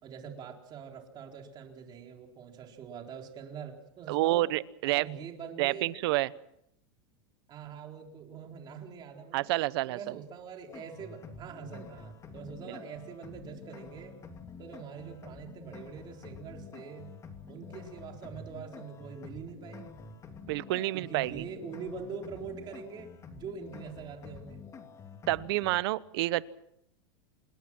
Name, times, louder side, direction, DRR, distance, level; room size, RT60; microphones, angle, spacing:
voice 1, 0.0-4.5 4.8-5.9 7.5-9.5 9.9-14.2 14.6-17.1 17.5-20.0 20.9-24.6, right 6 dB, 30° right, 2 dB, 4.0 m, -44 dB
voice 2, 4.1-5.1 5.6-6.3 9.3-10.2 12.7-12.8 20.5-21.4 25.3-26.4, right 18 dB, 65° right, 18 dB, 0.9 m, -29 dB
sound 1, 10.7-25.8, left 4 dB, 20° left, 2.8 m, -48 dB
27.0 x 21.0 x 6.1 m, 0.77 s
supercardioid pair, 140°, 14 cm